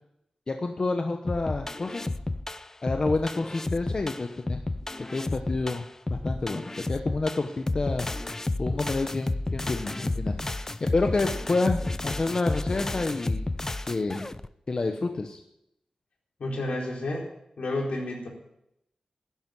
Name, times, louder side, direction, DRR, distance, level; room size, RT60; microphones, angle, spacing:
voice 1, 0.5-2.1 2.8-4.6 5.1-5.8 6.1-8.1 8.6-13.5 13.9-14.3 14.7-15.4, left 3 dB, 40° left, 4 dB, 1.1 m, -29 dB
sound 1, 1.3-14.5, left 2 dB, 20° left, 0.5 m, -31 dB
voice 2, 16.4-17.3 17.6-18.3, left 2 dB, 75° left, -1 dB, 4.3 m, -30 dB
11.5 x 11.0 x 9.4 m, 0.82 s
wide cardioid pair, 125°, 2 cm